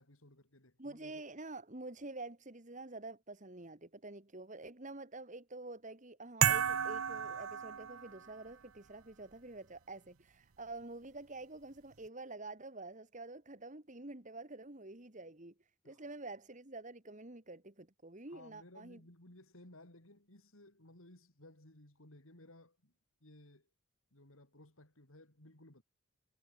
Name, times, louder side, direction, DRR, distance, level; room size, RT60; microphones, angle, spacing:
voice 1, 0.0-1.2 15.8-16.0 18.3-22.9 23.2-23.7 24.1-25.8, left 1 dB, 75° left, 4.5 m, -59 dB
voice 2, 0.8-15.5 15.8-19.0, right 2 dB, 35° right, 2.0 m, -48 dB
sound 1, 6.4-8.3, right 8 dB, 80° right, 0.8 m, -32 dB
head